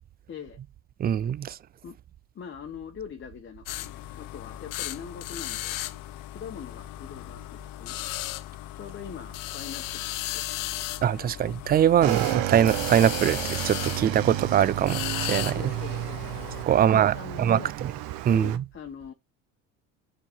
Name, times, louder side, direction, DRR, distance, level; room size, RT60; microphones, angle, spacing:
voice 1, 0.3-0.6 1.8-2.0 2.3-5.8 6.3-8.1 8.7-10.9 11.3-11.5 15.6-16.3 16.7-17.7 18.3-19.1, left 7 dB, 30° left, 1.0 m, -42 dB
voice 2, 1.0-1.6 11.0-15.7 16.7-17.9 18.3-18.5, right 10 dB, 25° right, 0.4 m, -23 dB
sound 1, 3.7-16.6, left 15 dB, 55° left, 0.7 m, -36 dB
Motorcycle / Engine, 12.0-18.6, right 15 dB, 65° right, 1.1 m, -31 dB
7.2 x 3.9 x 4.4 m
hypercardioid pair, 80°, 39 cm